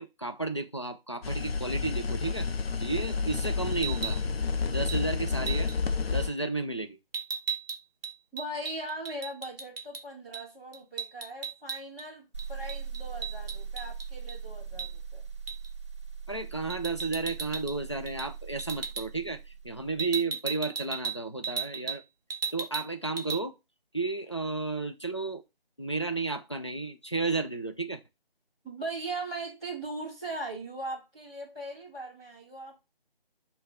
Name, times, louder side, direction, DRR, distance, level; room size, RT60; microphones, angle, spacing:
voice 1, 0.0-2.5 2.8-4.2 4.6-5.7 6.1-7.0 16.3-19.4 19.6-22.0 22.5-23.5 23.9-25.4 25.8-28.0, right 3 dB, 30° left, 0.4 m, -32 dB
sound 1, 1.2-6.3, left 5 dB, 80° left, 0.6 m, -30 dB
sound 2, 3.7-4.2 4.9-5.0 5.5-5.8 7.1-10.0 10.3-10.5 10.7-12.1 12.4-14.4 14.8-14.9 15.5-15.7 16.7-17.8 18.1-18.3 18.6-19.1 20.0-22.0 22.3-22.9 23.2-23.4, right 6 dB, 75° right, 0.5 m, -36 dB
voice 2, 8.3-15.2 28.6-32.8, right 2 dB, 5° left, 0.7 m, -39 dB
sound 3, 12.3-20.1, right 6 dB, 30° right, 0.6 m, -40 dB
6.1 x 2.2 x 3.5 m
figure-of-eight pair, 160°, 30 cm